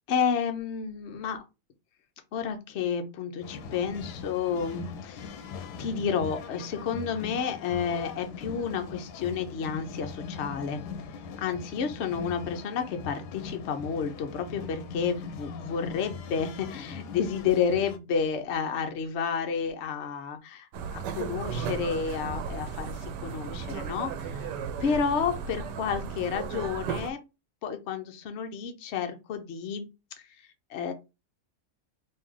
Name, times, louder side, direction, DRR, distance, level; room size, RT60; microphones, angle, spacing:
voice 1, 0.1-1.4 2.3-5.4 5.8-10.8 11.4-20.7 20.9-22.9 23.2-24.5 24.8-27.2 27.6-29.9 30.7-30.9, left 6 dB, 60° left, 0.7 m, -30 dB
sound 1, 3.4-18.0, left 5 dB, 80° left, 1.1 m, -41 dB
sound 2, 20.7-27.1, right 6 dB, 90° right, 1.2 m, -35 dB
3.2 x 2.7 x 3.6 m
omnidirectional pair, 1.8 m